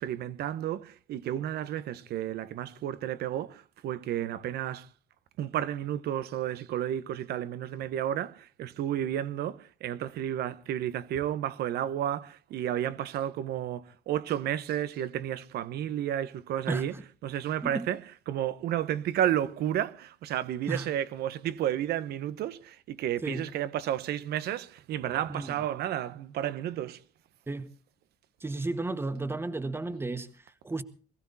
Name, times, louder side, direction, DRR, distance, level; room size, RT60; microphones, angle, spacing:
voice 1, 0.0-4.9 5.4-16.9 17.2-18.0 18.3-27.0, right 11 dB, 70° right, 1.2 m, -32 dB
voice 2, 16.7-17.0 17.6-17.9 20.7-20.9 23.2-23.4 25.3-25.5 27.5-27.7 28.4-30.8, right 2 dB, 15° right, 1.6 m, -33 dB
22.0 x 15.0 x 4.2 m
cardioid pair, 110°, 17 cm